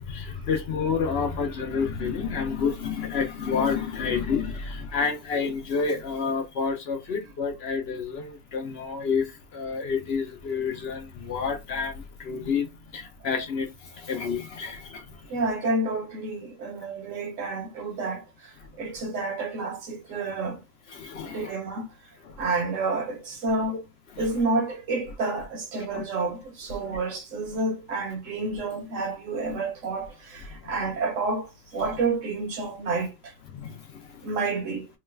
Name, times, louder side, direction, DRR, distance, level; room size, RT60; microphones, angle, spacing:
voice 1, 0.0-12.7 12.9-15.2 20.9-21.6 22.3-22.4 24.2-24.3 25.9-26.0 26.9-27.0 33.5-34.2, left 5 dB, 60° left, 0.7 m, -29 dB
voice 2, 15.3-20.6 21.2-21.9 22.4-23.9 24.2-33.3 34.2-34.9, right 3 dB, 70° right, 1.1 m, -29 dB
3.0 x 2.1 x 3.2 m
omnidirectional pair, 1.4 m